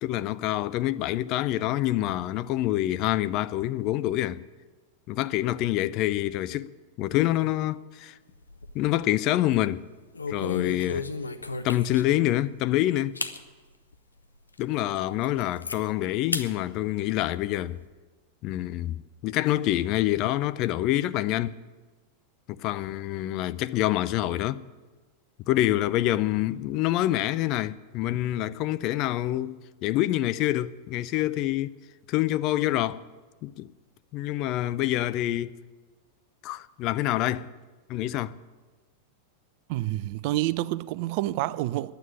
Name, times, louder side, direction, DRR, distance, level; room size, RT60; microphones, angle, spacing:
voice 1, 0.0-4.4 5.1-6.7 7.0-8.1 8.7-9.8 10.3-11.1 11.6-13.2 14.6-17.8 18.4-21.6 22.5-24.6 25.5-31.7 32.1-33.0 33.4-33.7 34.1-35.6 36.4-37.5 37.9-38.3, left 14 dB, 40° left, 0.4 m, -26 dB
sound 1, 8.3-9.0 9.4-9.6 10.1-12.2 12.7-12.8 13.2-13.4 13.9-14.0 14.5-14.6 15.0-15.8 16.3-16.5 16.9-17.8, left 3 dB, 80° left, 0.6 m, -34 dB
voice 2, 39.7-41.9, right 16 dB, 45° right, 0.4 m, -28 dB
11.0 x 9.1 x 9.7 m
figure-of-eight pair, 90°, 0 cm